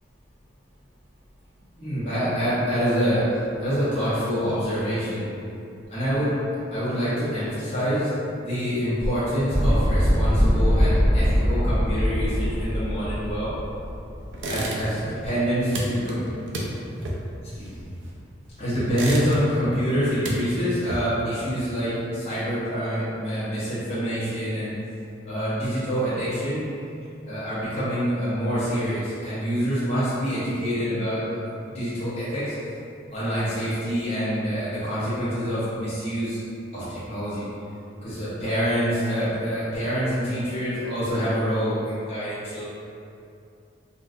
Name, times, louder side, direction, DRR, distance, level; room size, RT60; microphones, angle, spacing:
voice 1, 1.8-5.2 5.9-6.3 6.7-8.1 8.4-13.5 14.4-16.2 17.4-17.8 18.6-24.7 25.2-26.7 27.2-32.7 33.1-36.4 36.7-37.5 38.0-42.7, equal, 30° left, -12 dB, 0.8 m, -26 dB
sound 1, 9.5-14.7, equal, 10° right, 0.5 m, -22 dB
sound 2, 14.3-15.1 15.4-18.3 18.7-19.7 20.0-21.3, right 1 dB, 90° right, 0.5 m, -31 dB
3.8 x 2.4 x 2.4 m, 2.6 s
head